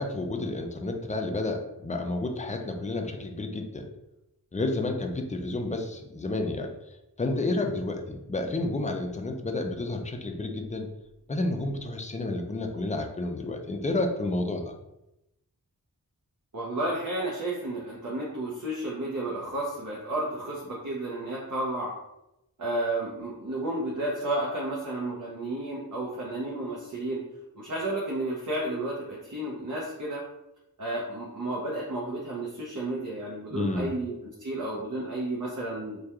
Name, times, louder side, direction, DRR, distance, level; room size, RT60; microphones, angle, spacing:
voice 1, 0.0-3.9 4.5-6.7 7.2-10.9 11.3-14.6 33.5-33.9, left 2 dB, 20° left, 4 dB, 0.3 m, -30 dB
voice 2, 16.5-21.9 22.6-27.2 27.6-30.2 30.8-36.0, right 1 dB, 55° right, -5 dB, 0.6 m, -32 dB
2.8 x 2.2 x 2.3 m, 0.90 s
wide cardioid pair, 45°, 37 cm